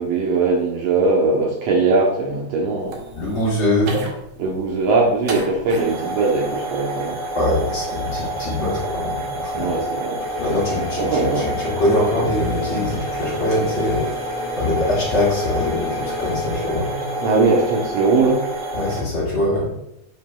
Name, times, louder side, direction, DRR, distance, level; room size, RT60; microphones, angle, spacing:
voice 1, 0.0-3.0 4.4-7.2 9.5-10.2 11.0-11.6 17.2-18.4, right 3 dB, 70° right, -1 dB, 1.5 m, -20 dB
sound 1, 2.8-19.0, right 1 dB, 90° right, 1.3 m, -29 dB
voice 2, 3.1-4.0 7.3-9.7 10.4-16.9 18.7-19.7, left 1 dB, 40° left, -7 dB, 2.4 m, -23 dB
sound 2, 10.2-17.9, left 3 dB, 75° left, 2.3 m, -32 dB
7.8 x 5.1 x 2.3 m, 0.79 s
omnidirectional pair, 4.1 m